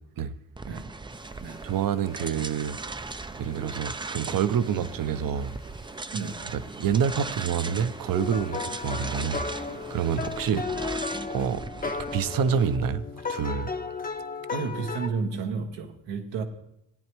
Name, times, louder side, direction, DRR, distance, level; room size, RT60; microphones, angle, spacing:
sound 1, 0.5-12.8, right 3 dB, 10° right, 0.4 m, -38 dB
sound 2, 1.1-10.5, left 5 dB, 90° left, 1.2 m, -56 dB
voice 1, 1.6-2.8 3.4-5.5 6.5-10.6 11.3-13.7, right 7 dB, 50° right, 0.7 m, -28 dB
voice 2, 6.1-6.5 10.5-10.6 14.5-16.4, right 5 dB, 90° right, 1.2 m, -32 dB
sound 3, 8.1-15.1, left 4 dB, 20° left, 0.7 m, -34 dB
18.0 x 9.7 x 3.1 m
supercardioid pair, 60°, 42 cm